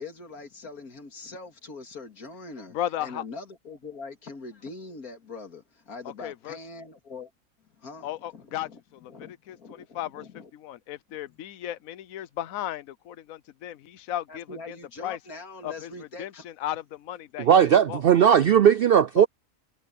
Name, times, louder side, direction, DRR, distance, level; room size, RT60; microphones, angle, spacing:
voice 1, 0.0-7.3 7.8-8.8 9.1-10.5 11.3-11.4 14.3-16.4, left 3 dB, 85° left, 3.0 m, -42 dB
voice 2, 2.7-3.2 6.0-6.6 8.0-9.1 9.5-10.3 10.5-14.8 15.0-15.2 15.6-17.5 17.9-18.0 19.2-19.3, left 12 dB, 70° left, 1.2 m, -35 dB
voice 3, 17.4-19.3, right 9 dB, 70° right, 0.5 m, -18 dB
omnidirectional pair, 1.5 m